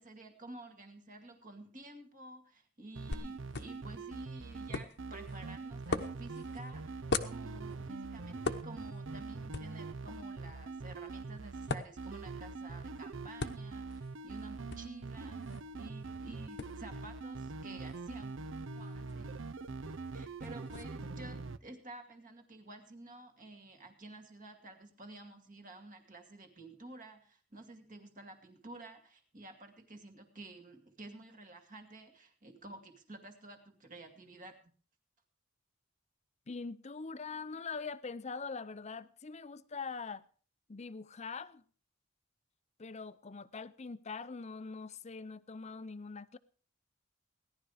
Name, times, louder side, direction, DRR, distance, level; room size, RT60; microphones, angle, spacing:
voice 1, 0.0-18.3 18.7-19.4 20.1-34.7, right 2 dB, 40° right, 2.3 m, -51 dB
sound 1, 3.0-21.6, right 3 dB, 65° right, 0.7 m, -43 dB
sound 2, 3.1-20.8, left 3 dB, 55° left, 1.0 m, -44 dB
voice 2, 36.5-40.2 40.7-41.6 42.8-46.4, left 4 dB, 35° left, 0.6 m, -43 dB
17.5 x 11.5 x 4.9 m
head